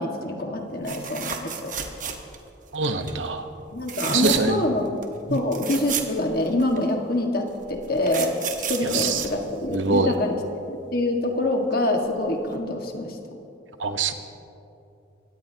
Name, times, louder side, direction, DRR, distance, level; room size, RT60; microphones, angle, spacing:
voice 1, 0.0-1.7 3.7-4.9 5.3-8.3 8.7-10.4 10.7-13.2, left 1 dB, 50° left, 2 dB, 1.6 m, -25 dB
sound 1, 0.8-2.5 2.8-3.2 3.8-4.7 5.0-5.1 5.3-6.8 7.6-10.1 12.1-12.2 12.5-12.6, right 7 dB, 40° right, 1.2 m, -32 dB
voice 2, 2.7-3.5 4.1-4.6 5.3-5.4 8.8-9.2 9.7-10.1 13.8-14.1, right 4 dB, 80° right, 8 dB, 1.0 m, -24 dB
24.0 x 17.0 x 2.8 m, 2.8 s
head